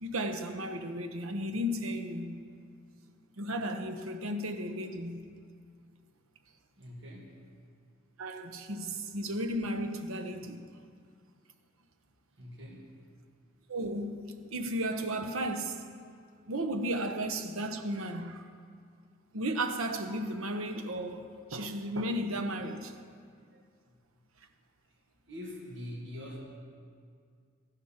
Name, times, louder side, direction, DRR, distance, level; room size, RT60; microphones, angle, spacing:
voice 1, 0.0-2.4 3.4-5.3 8.2-10.7 13.7-15.9 16.5-18.5 19.3-22.9, right 1 dB, 80° right, 1.0 m, -34 dB
voice 2, 6.8-7.5 12.4-13.0 23.9-24.2 25.2-26.4, left 1 dB, 55° right, 2.2 m, -44 dB
14.5 x 11.0 x 5.8 m
head